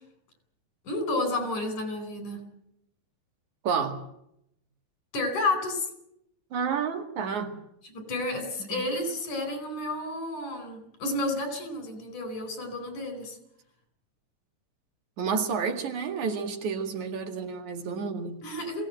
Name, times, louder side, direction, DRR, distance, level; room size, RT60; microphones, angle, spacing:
voice 1, 0.8-2.4 5.1-5.9 7.9-13.4 18.4-18.9, left 2 dB, 90° left, 8 dB, 6.2 m, -31 dB
voice 2, 3.6-4.0 6.5-7.6 8.7-8.8 15.2-18.4, right 6 dB, 80° right, 5 dB, 3.5 m, -30 dB
22.0 x 17.5 x 9.0 m, 0.78 s
omnidirectional pair, 3.4 m